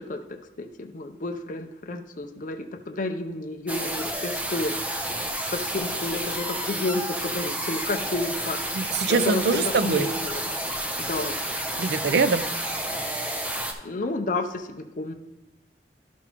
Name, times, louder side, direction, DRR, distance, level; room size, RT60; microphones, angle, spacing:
voice 1, 0.0-4.7 5.5-8.6 9.1-10.6 11.0-11.3 13.8-15.1, left 2 dB, 45° left, 5 dB, 0.6 m, -31 dB
sound 1, 3.7-13.7, right 1 dB, 10° right, 0.6 m, -30 dB
voice 2, 8.7-10.1 11.8-12.5, right 4 dB, 65° right, 13 dB, 0.5 m, -23 dB
12.0 x 5.9 x 2.9 m, 0.93 s
head